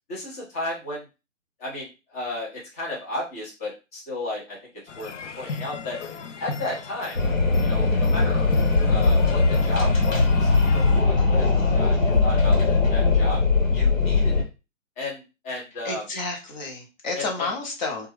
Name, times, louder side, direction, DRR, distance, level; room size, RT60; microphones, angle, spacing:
voice 1, 0.1-1.1 1.6-6.0 6.4-7.2 7.6-8.5 8.9-13.4 13.7-14.5 15.0-16.0 17.1-17.2, left 2 dB, 10° left, -4 dB, 0.6 m, -34 dB
sound 1, 4.9-11.0, left 4 dB, 65° left, 0.5 m, -37 dB
Wind, 7.2-14.4, left 3 dB, 85° left, 1.1 m, -20 dB
voice 2, 15.8-18.1, left 3 dB, 35° left, 1 dB, 0.9 m, -31 dB
3.0 x 2.3 x 3.2 m, 0.28 s
figure-of-eight pair, 135°, 39 cm